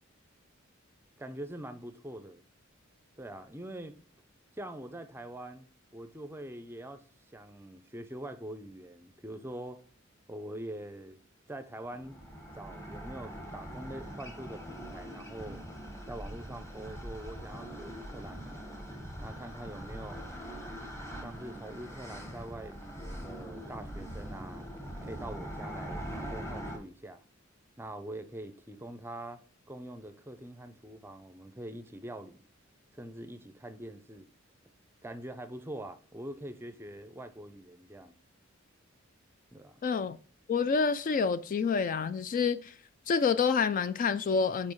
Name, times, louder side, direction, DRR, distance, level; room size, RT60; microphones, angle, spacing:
voice 1, 1.2-2.4 3.2-4.0 4.5-5.6 5.9-7.0 7.3-9.8 10.3-11.2 11.5-12.2 12.5-15.6 16.1-18.6 19.2-20.3 21.2-24.7 25.0-27.2 27.8-29.4 29.7-32.4 33.0-34.3 35.0-38.1 39.5-39.8, right 1 dB, 10° right, 0.5 m, -44 dB
sound 1, 11.9-26.8, equal, 15° left, 1.2 m, -42 dB
voice 2, 39.8-40.2 40.5-42.7 43.1-44.7, left 5 dB, 40° left, 0.3 m, -28 dB
7.5 x 4.3 x 3.1 m
head